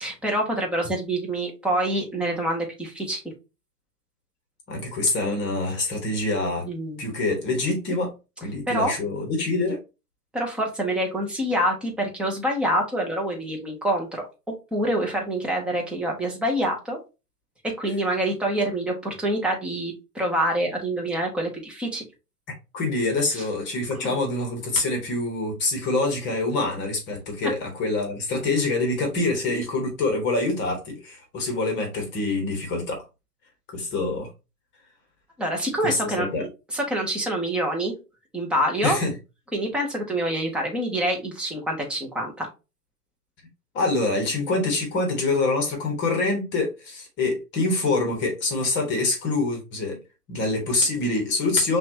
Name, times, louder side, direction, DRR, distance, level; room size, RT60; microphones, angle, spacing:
voice 1, 0.0-3.2 6.7-7.0 8.7-8.9 10.3-14.2 14.7-17.0 17.6-22.0 23.3-23.4 23.9-24.2 27.4-27.5 35.4-38.0 38.3-39.0 39.5-42.5, right 1 dB, ahead, 0.7 m, -26 dB
voice 2, 4.7-6.6 7.0-8.1 8.4-9.8 22.7-33.0 33.7-34.3 35.8-36.4 38.8-39.1 43.7-50.0 50.3-51.8, left 2 dB, 25° left, 1.2 m, -25 dB
5.6 x 2.4 x 2.7 m
hypercardioid pair, 120°, 47 cm